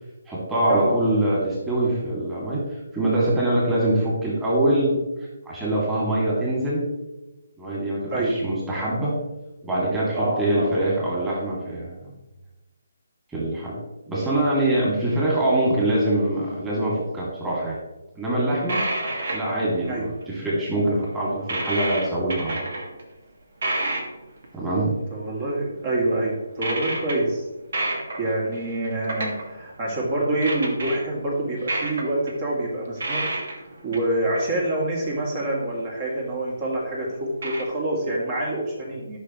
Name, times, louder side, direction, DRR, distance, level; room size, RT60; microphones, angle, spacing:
voice 1, 0.3-2.6 2.9-5.0 5.5-6.9 7.6-9.1 9.6-12.0 13.3-13.8 14.1-17.8 18.2-18.8 19.3-22.6 24.5-24.9, right 1 dB, 10° right, -6 dB, 2.6 m, -24 dB
voice 2, 10.1-10.7 19.9-20.1 25.1-27.4 27.9-33.2 33.5-39.2, right 1 dB, 35° right, -3 dB, 2.6 m, -26 dB
sound 1, 18.7-19.8 20.2-20.3 20.5-20.6 21.0-21.1 21.5-23.0 23.6-24.4 26.6-27.2 27.7-29.6 30.3-31.0 31.6-34.0 34.3-34.4 36.7-36.8 37.4-37.6, right 2 dB, 55° right, 1.8 m, -29 dB
13.5 x 6.3 x 3.1 m, 1.0 s
figure-of-eight pair, 145°, 0 cm